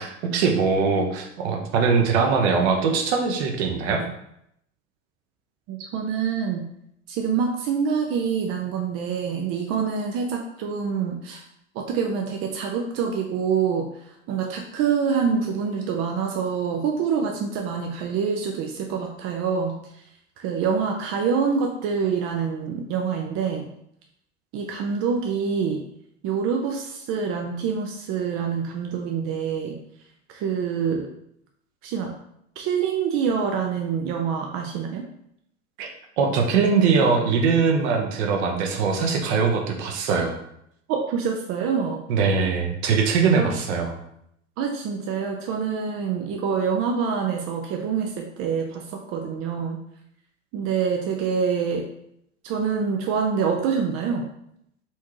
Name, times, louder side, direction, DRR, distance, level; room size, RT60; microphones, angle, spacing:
voice 1, 0.0-4.0 35.8-35.9 36.2-40.4 42.1-43.9, right 5 dB, 55° right, 3 dB, 0.9 m, -21 dB
voice 2, 5.7-6.7 7.1-11.4 11.8-13.9 14.3-19.8 20.4-23.7 24.5-25.8 26.2-29.8 30.3-31.1 31.8-32.2 32.6-35.0 40.9-42.0 43.4-43.5 44.6-49.8 50.5-51.9 52.4-54.3, right 6 dB, 40° right, 2 dB, 0.5 m, -26 dB
4.4 x 3.5 x 3.0 m, 0.76 s
figure-of-eight pair, 75°, 38 cm